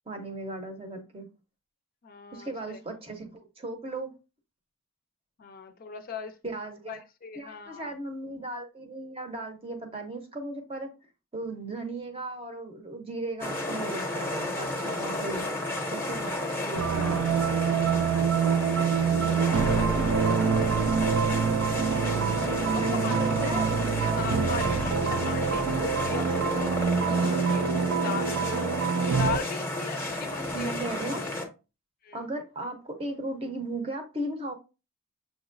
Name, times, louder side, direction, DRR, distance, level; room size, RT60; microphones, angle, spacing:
voice 1, 0.1-1.3 2.3-4.1 6.4-7.0 7.3-10.9 11.3-15.5 15.9-17.2 19.1-19.4 20.1-20.3 22.0-24.3 27.0-27.8 30.5-31.3 32.1-34.5, right 2 dB, 25° right, 0.7 m, -37 dB
voice 2, 2.0-2.8 5.4-6.4 6.9-7.9 18.3-20.5 20.7-20.9 22.7-23.2 24.1-26.7 27.1-28.7 29.1-30.7 32.0-32.2, left 6 dB, 45° left, 0.5 m, -39 dB
sound 1, 13.4-31.4, left 1 dB, 10° left, 0.7 m, -32 dB
sound 2, 16.7-29.4, right 6 dB, 65° right, 0.4 m, -26 dB
6.3 x 2.9 x 2.6 m
head